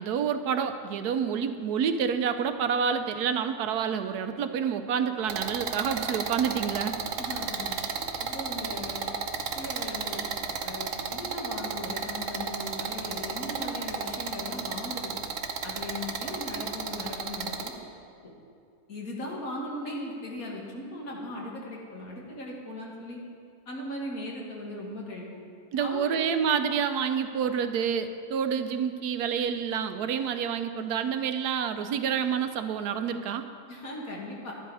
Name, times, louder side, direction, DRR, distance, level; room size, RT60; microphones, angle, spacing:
voice 1, 0.0-7.0 25.7-33.5, right 7 dB, 80° right, 9 dB, 1.2 m, -28 dB
sound 1, 5.3-17.7, right 5 dB, 60° right, 1.1 m, -33 dB
voice 2, 7.2-7.8 8.2-9.1 9.5-10.3 10.6-15.2 15.6-17.7 18.2-18.3 18.9-23.2 23.7-25.4 25.8-26.2 33.7-34.5, left 1 dB, 60° left, -2 dB, 2.3 m, -38 dB
11.5 x 11.0 x 4.8 m, 2.4 s
omnidirectional pair, 1.7 m